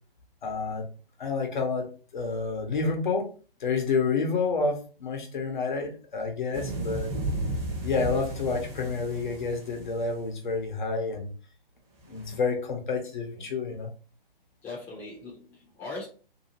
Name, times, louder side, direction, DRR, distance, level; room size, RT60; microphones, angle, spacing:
voice 1, 0.4-0.9 1.2-1.9 2.1-3.3 3.6-7.2 7.8-11.3 12.1-13.9, left 4 dB, 55° left, 0.8 m, -29 dB
sound 1, 6.5-10.2 12.1-12.4, right 1 dB, 25° right, 0.8 m, -34 dB
voice 2, 14.6-16.1, left 3 dB, 5° left, 0.6 m, -40 dB
2.7 x 2.3 x 2.8 m
figure-of-eight pair, 135°, 29 cm